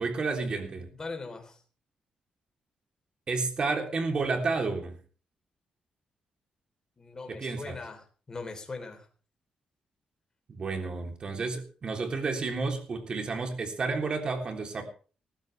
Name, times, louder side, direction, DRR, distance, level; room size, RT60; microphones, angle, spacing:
voice 1, 0.0-0.9 3.3-5.0 7.3-7.7 10.5-14.8, right 4 dB, 40° right, 4 dB, 3.5 m, -31 dB
voice 2, 1.0-1.6 7.0-9.1, left 3 dB, 25° left, 5 dB, 3.9 m, -40 dB
18.5 x 15.0 x 3.5 m, 0.38 s
cardioid pair, 130°, 2 cm